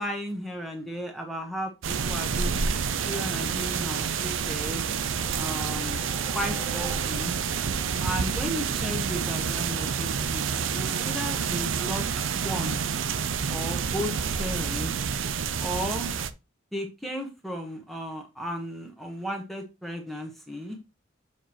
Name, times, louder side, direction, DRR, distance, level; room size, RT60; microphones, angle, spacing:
voice 1, 0.0-2.6 3.0-4.8 5.3-6.0 6.3-7.4 8.0-10.4 10.7-12.1 12.3-12.8 13.5-14.1 14.4-14.9 15.6-16.1 16.7-20.8, equal, ahead, 1 dB, 1.0 m, -34 dB
sound 1, 1.8-16.3, right 6 dB, 80° right, 0.6 m, -28 dB
sound 2, 4.6-7.6, right 2 dB, 15° right, 0.6 m, -45 dB
7.3 x 4.5 x 3.0 m, 0.27 s
head